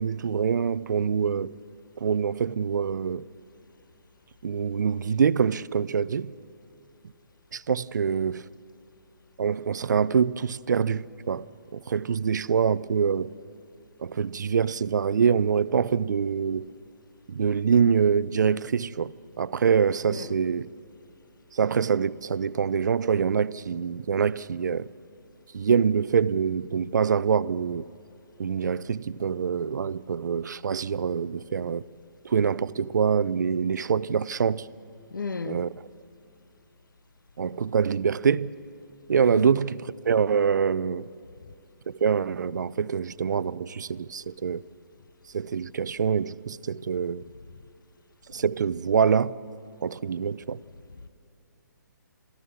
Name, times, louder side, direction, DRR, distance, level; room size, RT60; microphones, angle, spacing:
voice 1, 0.0-1.5 2.0-3.3 4.4-6.3 7.5-8.4 9.4-11.4 11.7-13.3 14.0-16.6 17.3-20.7 21.5-24.9 25.5-27.9 28.4-31.8 32.2-34.7 35.4-35.7 37.4-38.5 39.1-41.1 41.9-44.6 45.3-47.2 48.3-49.3 49.8-50.6, right 6 dB, 65° right, 0.5 m, -25 dB
voice 2, 35.1-35.7 39.3-39.5, left 4 dB, 75° left, 0.8 m, -34 dB
27.5 x 14.0 x 6.9 m
figure-of-eight pair, 135°, 11 cm